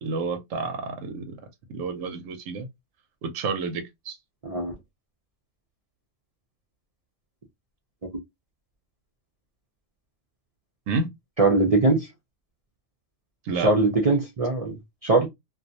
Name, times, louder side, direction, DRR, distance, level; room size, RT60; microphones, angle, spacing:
voice 1, 0.0-1.3 1.7-2.7 3.2-4.2 10.9-11.1 13.4-13.7, right 4 dB, 85° right, 1.0 m, -30 dB
voice 2, 11.4-12.1 13.6-15.3, right 3 dB, 50° right, 0.4 m, -21 dB
2.3 x 2.3 x 2.6 m
omnidirectional pair, 1.3 m